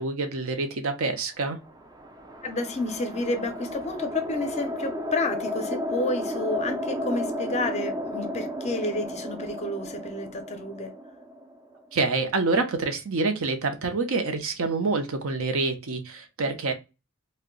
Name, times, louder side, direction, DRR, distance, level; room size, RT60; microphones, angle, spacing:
voice 1, 0.0-1.6 11.9-16.7, right 3 dB, 65° right, 0.6 m, -27 dB
sound 1, 1.6-12.0, left 1 dB, 20° right, 0.4 m, -33 dB
voice 2, 2.4-10.9, left 2 dB, 30° left, 0.5 m, -30 dB
2.6 x 2.1 x 3.7 m
head